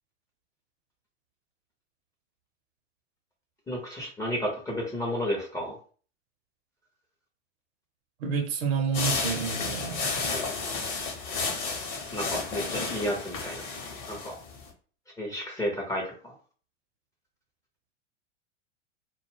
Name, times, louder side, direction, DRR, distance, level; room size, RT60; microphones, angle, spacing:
voice 1, 3.7-5.7 12.1-13.6 14.1-14.3 15.2-16.3, equal, 10° left, 0.5 m, -32 dB
voice 2, 8.2-10.3, right 6 dB, 55° right, 0.7 m, -29 dB
sound 1, 8.9-14.7, left 4 dB, 35° left, 0.8 m, -32 dB
2.2 x 2.0 x 3.2 m
figure-of-eight pair, 95°, 37 cm